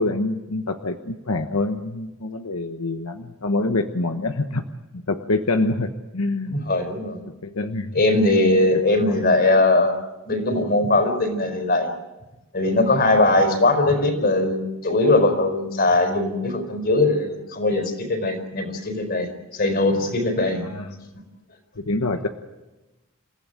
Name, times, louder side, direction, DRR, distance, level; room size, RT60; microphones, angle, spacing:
voice 1, 0.0-4.6 4.9-6.6 7.4-8.0 20.6-21.0 21.8-22.3, left 2 dB, 85° left, 6 dB, 1.2 m, -26 dB
voice 2, 6.5-7.2 7.9-10.0 10.3-11.9 12.5-20.7, left 2 dB, 45° left, 6 dB, 4.6 m, -20 dB
28.5 x 16.0 x 9.1 m, 1.1 s
head